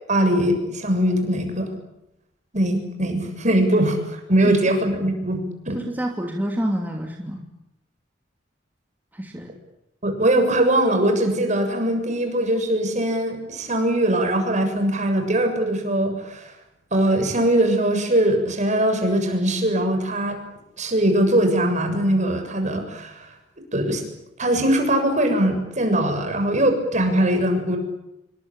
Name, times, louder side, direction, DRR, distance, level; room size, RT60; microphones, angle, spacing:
voice 1, 0.1-1.7 2.5-5.8 10.0-16.4 16.9-20.4 20.8-23.3 23.7-24.0 24.4-27.8, right 1 dB, 40° right, 5 dB, 7.1 m, -21 dB
voice 2, 5.7-7.4 9.1-9.5, equal, 10° right, 1 dB, 2.8 m, -28 dB
27.0 x 24.0 x 8.8 m, 0.87 s
head